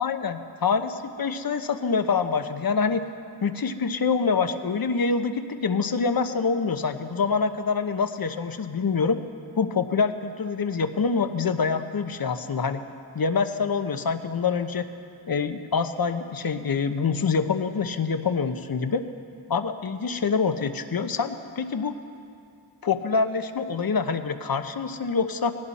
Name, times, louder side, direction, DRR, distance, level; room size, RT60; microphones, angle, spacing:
voice 1, 0.0-3.0 3.4-9.2 9.6-12.8 13.1-14.9 15.3-19.0 19.5-21.9 22.8-25.5, left 5 dB, 50° left, 9 dB, 0.9 m, -25 dB
19.0 x 17.0 x 4.2 m, 2.5 s
cardioid pair, 65°, 47 cm